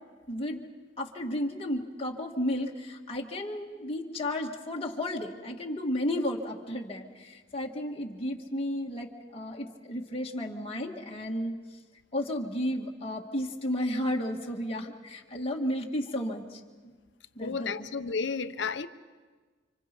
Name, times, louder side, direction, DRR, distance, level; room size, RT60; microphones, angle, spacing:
voice 1, 0.3-0.7 1.0-11.6 12.1-16.9 17.4-17.9, left 1 dB, 30° left, 2.0 m, -33 dB
voice 2, 17.4-18.9, left 5 dB, 65° left, 0.8 m, -32 dB
30.0 x 26.0 x 5.4 m
head